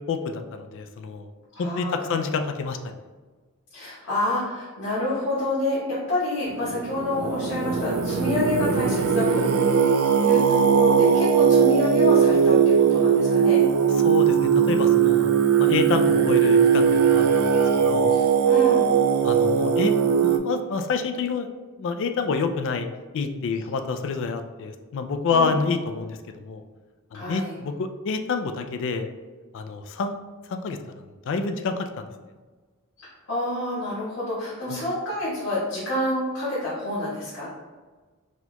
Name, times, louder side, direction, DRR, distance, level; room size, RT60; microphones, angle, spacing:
voice 1, 0.1-1.3 1.6-2.8 14.0-15.3 15.6-18.1 19.2-19.9 20.2-21.5 21.8-22.9 23.1-26.6 27.1-29.1 29.5-30.1 30.5-32.1 34.7-34.8, left 4 dB, 60° left, 7 dB, 0.3 m, -28 dB
voice 2, 1.5-2.3 3.7-9.4 10.2-13.6 18.1-18.9 25.3-25.5 27.1-27.5 33.0-37.5, left 1 dB, 80° left, -11 dB, 1.4 m, -28 dB
Singing, 6.5-20.4, right 7 dB, 85° right, 0.4 m, -19 dB
4.2 x 2.8 x 2.2 m, 1.4 s
head